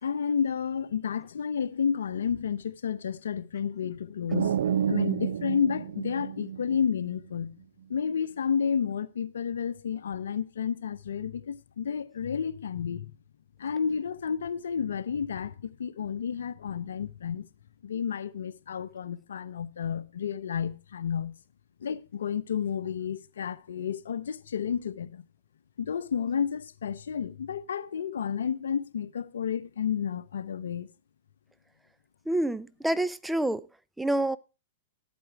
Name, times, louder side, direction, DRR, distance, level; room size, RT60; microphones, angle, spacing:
voice 1, 0.0-4.6 4.9-7.5 7.9-13.1 13.6-17.5 17.8-21.3 21.8-25.2 25.8-30.9, left 7 dB, 80° left, 0.9 m, -31 dB
sound 1, 4.3-7.1, right 9 dB, 75° right, 0.6 m, -29 dB
voice 2, 32.3-33.7 34.0-34.4, right 1 dB, 5° right, 0.6 m, -27 dB
12.0 x 8.6 x 4.7 m
hypercardioid pair, 120°, 0 cm